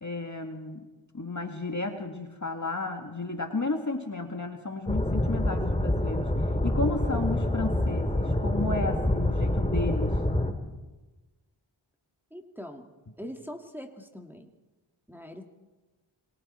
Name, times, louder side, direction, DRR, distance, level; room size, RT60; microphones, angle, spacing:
voice 1, 0.0-0.9 1.1-6.3 6.6-10.2, left 3 dB, 35° left, 4 dB, 2.0 m, -33 dB
sound 1, 4.9-10.5, left 1 dB, 15° left, 2.5 m, -26 dB
voice 2, 12.3-12.9 13.2-14.5 15.1-15.4, equal, 5° right, 2 dB, 2.1 m, -42 dB
26.0 x 23.0 x 4.4 m, 1.2 s
cardioid pair, 45°, 50 cm